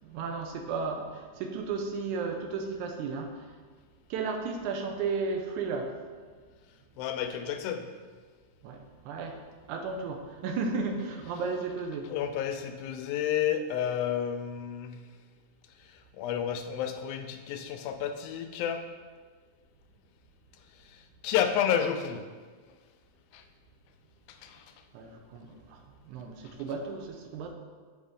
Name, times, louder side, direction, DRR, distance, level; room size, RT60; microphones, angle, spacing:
voice 1, 0.0-3.5 4.1-6.0 8.6-9.4 9.7-12.1 24.9-27.5, right 4 dB, 85° right, 4 dB, 2.1 m, -34 dB
voice 2, 7.0-7.9 12.1-15.0 16.2-18.9 21.2-22.3 23.3-23.4 24.4-24.6, left 9 dB, 85° left, 7 dB, 2.0 m, -30 dB
7.7 x 4.1 x 3.7 m, 1.5 s
omnidirectional pair, 3.4 m